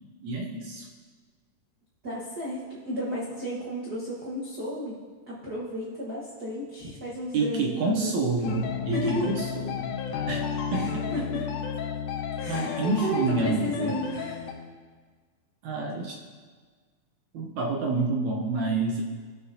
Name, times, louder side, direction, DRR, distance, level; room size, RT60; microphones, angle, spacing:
voice 1, 0.2-0.9 7.3-9.9 10.3-11.1 12.5-14.0 15.6-16.2 17.3-19.0, right 3 dB, 75° right, -1 dB, 2.1 m, -28 dB
voice 2, 2.0-5.0 5.3-8.3 8.9-9.3 10.7-11.4 12.4-14.5, equal, 50° right, -7 dB, 1.2 m, -33 dB
sound 1, 8.4-14.5, left 7 dB, 80° left, 2.2 m, -32 dB
17.5 x 6.9 x 2.7 m, 1.5 s
omnidirectional pair, 3.7 m